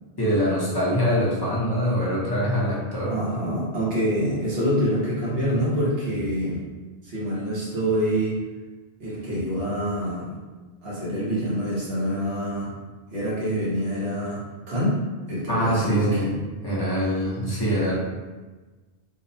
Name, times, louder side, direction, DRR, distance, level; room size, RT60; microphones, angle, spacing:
voice 1, 0.2-3.2 15.5-16.3 16.6-17.9, equal, 30° left, -7 dB, 0.5 m, -24 dB
voice 2, 3.1-6.6 7.0-8.4 9.0-10.3 10.8-12.7 13.1-14.4 14.7-15.0 15.3-16.3, equal, 70° right, -7 dB, 1.0 m, -26 dB
2.7 x 2.0 x 2.6 m, 1.3 s
omnidirectional pair, 1.1 m